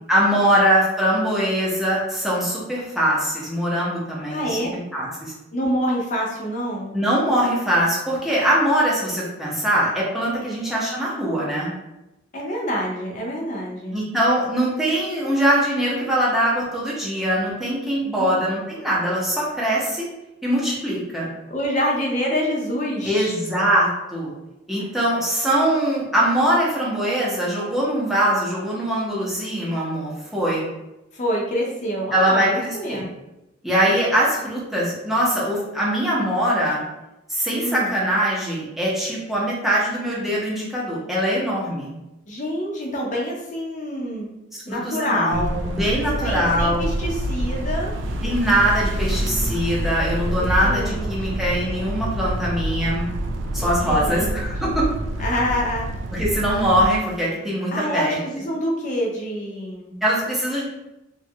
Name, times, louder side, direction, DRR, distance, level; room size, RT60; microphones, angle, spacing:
voice 1, 0.1-4.6 4.9-5.3 6.9-11.7 13.9-20.0 20.4-21.3 23.0-24.3 24.7-30.6 32.1-33.0 33.6-36.8 37.3-41.9 44.7-46.8 48.2-53.1 53.5-54.9 55.2-55.3 56.1-58.2 60.0-60.7, equal, ahead, -6 dB, 0.7 m, -22 dB
voice 2, 4.3-4.8 5.5-7.0 10.4-10.6 12.3-14.0 18.0-18.3 19.8-19.9 21.5-23.3 24.8-24.9 31.1-33.1 37.6-37.9 42.3-44.3 44.7-47.9 50.4-51.4 53.6-54.8 55.2-55.9 57.7-60.0, equal, 40° left, -2 dB, 0.6 m, -27 dB
sound 1, 45.3-56.9, right 1 dB, 65° right, 0.3 m, -27 dB
3.0 x 2.3 x 2.8 m, 0.94 s
head